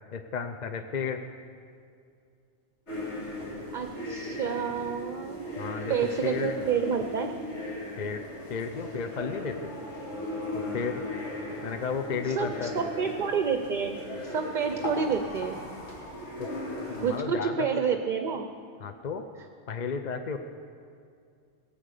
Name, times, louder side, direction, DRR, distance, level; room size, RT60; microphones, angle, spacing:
voice 1, 0.1-1.2 5.6-6.0 6.2-6.6 8.0-9.7 10.5-11.0 11.6-12.7 16.4-16.5 16.9-17.8 18.8-19.2 19.7-20.4, left 6 dB, 50° left, 7 dB, 0.6 m, -33 dB
sound 1, 2.9-17.2, left 1 dB, 80° left, 2.9 m, -37 dB
voice 2, 3.7-5.4 5.9-7.3 12.3-15.6 17.0-18.5, right 6 dB, 50° right, 6 dB, 0.7 m, -29 dB
17.5 x 7.8 x 6.6 m, 2.3 s
omnidirectional pair, 1.2 m